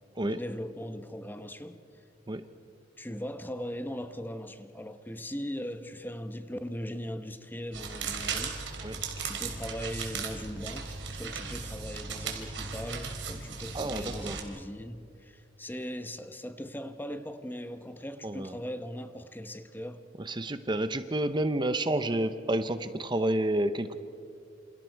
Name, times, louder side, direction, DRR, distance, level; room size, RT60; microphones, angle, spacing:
voice 1, 0.2-1.8 3.0-20.0, equal, 10° left, 10 dB, 1.0 m, -39 dB
sound 1, 7.7-14.4, right 5 dB, 80° right, 3.3 m, -37 dB
voice 2, 13.7-14.4 18.2-18.5 20.3-24.0, right 1 dB, 25° right, 11 dB, 0.8 m, -29 dB
28.0 x 28.0 x 4.6 m, 2.5 s
head